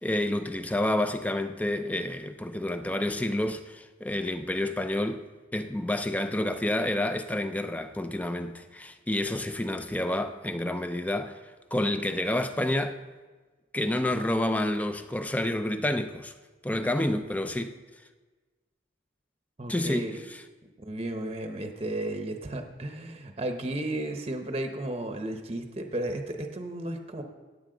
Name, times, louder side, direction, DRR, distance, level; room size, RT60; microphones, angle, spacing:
voice 1, 0.0-5.2 5.5-11.4 11.7-13.0 13.7-16.3 16.6-17.8 19.7-20.4, left 1 dB, 10° left, 0.4 m, -29 dB
voice 2, 19.6-20.3 20.8-27.2, right 1 dB, 30° right, 0.8 m, -34 dB
17.0 x 8.3 x 3.8 m
head